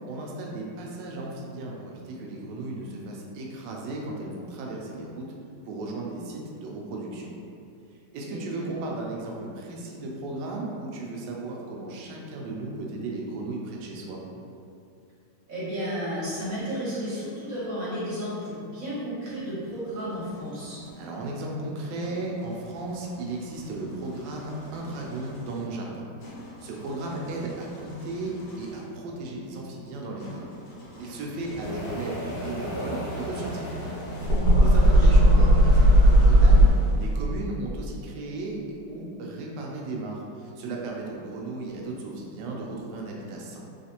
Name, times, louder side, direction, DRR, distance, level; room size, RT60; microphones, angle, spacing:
voice 1, 0.1-5.3 5.6-7.3 8.1-14.2 21.0-26.1 26.6-30.5 31.0-33.8 34.6-38.6 38.9-43.6, right 2 dB, 90° right, -2 dB, 1.2 m, -35 dB
voice 2, 8.3-8.7 15.5-20.8 35.1-35.5, equal, 55° right, -9 dB, 1.3 m, -33 dB
sound 1, 19.5-21.1 22.0-29.0 30.2-37.5, right 1 dB, 75° left, 1.4 m, -41 dB
sound 2, 31.6-36.7, equal, 60° left, 1.6 m, -18 dB
3.2 x 3.2 x 2.8 m, 2.5 s
omnidirectional pair, 1.9 m